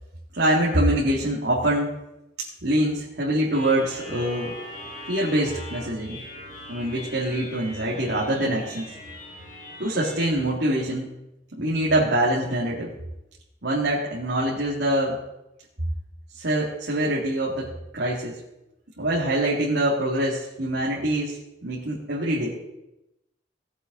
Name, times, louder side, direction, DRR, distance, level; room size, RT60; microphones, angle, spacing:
voice 1, 0.3-1.9 2.4-4.5 5.1-6.2 6.7-8.9 9.8-11.1 11.5-13.0 13.6-15.2 16.3-18.4 19.0-21.4 21.6-22.6, right 1 dB, 70° right, -6 dB, 2.4 m, -24 dB
sound 1, 3.5-10.4, left 1 dB, 45° left, 2.7 m, -41 dB
17.5 x 8.1 x 4.0 m, 0.90 s
head